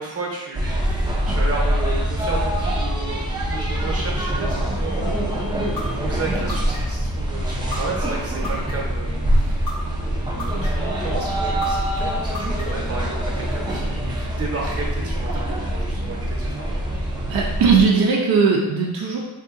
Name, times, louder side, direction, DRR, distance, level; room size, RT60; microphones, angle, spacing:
voice 1, 0.0-16.9, right 3 dB, 35° right, -3 dB, 0.8 m, -33 dB
sound 1, 0.5-17.9, equal, 10° right, 0.5 m, -24 dB
sound 2, 5.8-5.9 6.5-7.0 7.7-7.8 8.4-9.0 9.7-9.8 10.4-10.9 11.6-11.7 12.3-12.9, left 3 dB, 45° left, 0.9 m, -32 dB
voice 2, 17.3-19.2, right 5 dB, 60° right, -2 dB, 0.5 m, -18 dB
3.6 x 2.7 x 2.5 m, 1.0 s
wide cardioid pair, 135°, 41 cm